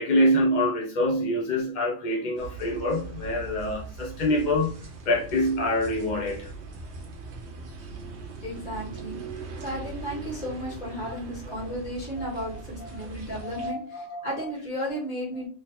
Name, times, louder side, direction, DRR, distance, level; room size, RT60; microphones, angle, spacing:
voice 1, 0.0-4.7 5.1-6.5 11.6-11.8 12.2-13.1 13.4-14.5, left 1 dB, 50° left, 0.6 m, -26 dB
sound 1, 2.3-13.7, right 4 dB, 60° right, 1.0 m, -40 dB
voice 2, 8.4-9.2 9.6-15.5, equal, 35° left, 1.8 m, -34 dB
3.2 x 3.2 x 2.9 m
omnidirectional pair, 1.4 m